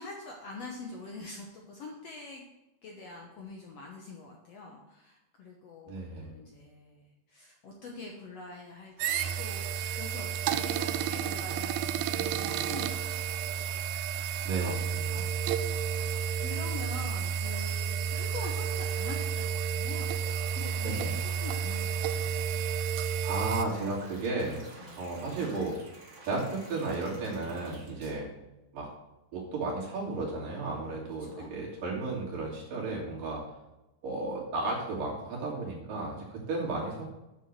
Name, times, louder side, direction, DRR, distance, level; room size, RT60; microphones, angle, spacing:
voice 1, 0.0-2.4 2.8-13.4 15.3-22.6 24.8-25.1 31.2-31.5 31.7-31.9, left 3 dB, 60° left, 0 dB, 1.7 m, -45 dB
voice 2, 5.9-6.3 14.4-15.3 20.8-21.2 23.2-24.7 25.0-25.8 26.3-28.3 28.7-28.9 29.3-33.4 34.0-37.1, right 3 dB, 70° right, -4 dB, 4.5 m, -34 dB
sound 1, 9.0-28.1, right 2 dB, 40° right, 1.0 m, -51 dB
sound 2, 9.0-23.6, right 8 dB, 90° right, 2.4 m, -31 dB
9.3 x 6.4 x 6.7 m, 0.96 s
omnidirectional pair, 4.1 m